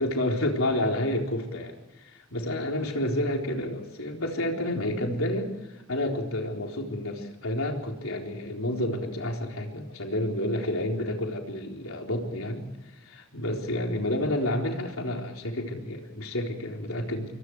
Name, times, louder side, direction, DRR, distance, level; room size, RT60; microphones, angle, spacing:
voice 1, 0.0-5.5 5.9-17.3, left 1 dB, 90° left, 2 dB, 4.1 m, -30 dB
27.0 x 23.5 x 4.8 m, 1.0 s
head